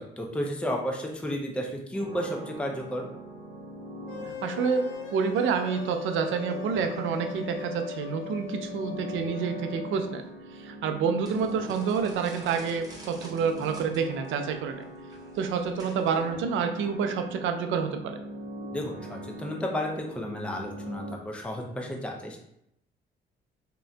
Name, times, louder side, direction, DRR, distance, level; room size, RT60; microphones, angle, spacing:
voice 1, 0.0-3.1 18.7-22.4, equal, 5° left, 0 dB, 0.5 m, -32 dB
sound 1, 1.9-21.1, right 1 dB, 45° left, 1.3 m, -42 dB
sound 2, 4.1-10.2, left 10 dB, 80° left, 0.4 m, -41 dB
voice 2, 4.3-10.2 10.5-14.8 15.4-17.9, right 6 dB, 80° right, 6 dB, 0.5 m, -28 dB
sound 3, 11.2-16.3, right 1 dB, 20° right, 0.9 m, -51 dB
3.7 x 2.4 x 2.2 m, 0.77 s
cardioid pair, 90°, 20 cm